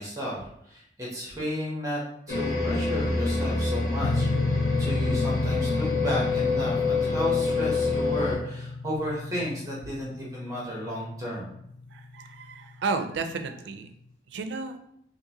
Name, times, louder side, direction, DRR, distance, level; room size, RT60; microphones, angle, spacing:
voice 1, 0.0-2.0 2.3-4.3 4.7-11.5, equal, 20° right, -5 dB, 0.9 m, -33 dB
sound 1, 2.3-8.4, left 3 dB, 60° left, 0.7 m, -26 dB
sound 2, 4.0-12.7, left 3 dB, 85° left, 0.3 m, -32 dB
voice 2, 11.9-13.9 14.3-14.8, right 4 dB, 90° right, 7 dB, 0.4 m, -32 dB
3.8 x 2.5 x 2.8 m, 0.72 s
head